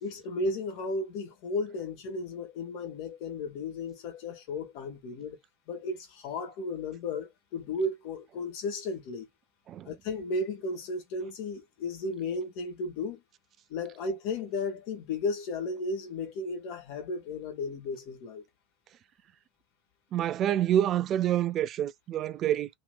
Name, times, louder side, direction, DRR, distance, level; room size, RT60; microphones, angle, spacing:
voice 1, 0.0-5.4 5.7-9.3 9.8-13.2 13.7-18.4, left 2 dB, 50° left, 1.3 m, -34 dB
voice 2, 20.1-22.7, right 11 dB, 35° right, 0.3 m, -27 dB
3.0 x 2.9 x 2.3 m
figure-of-eight pair, 80°, 0 cm